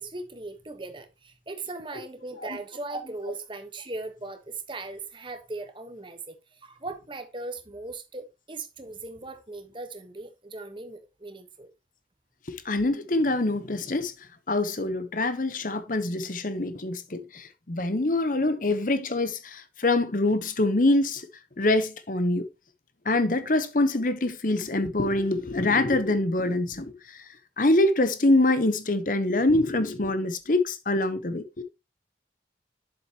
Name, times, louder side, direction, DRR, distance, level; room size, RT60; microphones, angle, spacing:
voice 1, 0.0-11.7, right 2 dB, 25° right, 1.2 m, -38 dB
voice 2, 12.5-14.1 14.5-21.3 21.6-22.5 23.0-27.2 27.6-31.6, left 2 dB, 45° left, 1.0 m, -25 dB
7.8 x 7.2 x 3.0 m
head